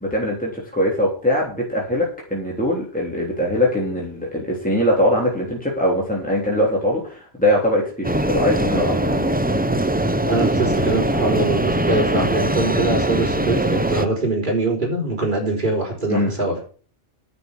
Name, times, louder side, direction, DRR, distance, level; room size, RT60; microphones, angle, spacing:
voice 1, 0.0-9.3 16.1-16.3, left 1 dB, 10° left, -3 dB, 3.3 m, -22 dB
sound 1, 8.0-14.1, right 1 dB, 10° right, 0.6 m, -21 dB
voice 2, 10.3-16.6, right 2 dB, 50° right, -1 dB, 4.5 m, -23 dB
9.9 x 6.9 x 8.0 m, 0.40 s
omnidirectional pair, 1.0 m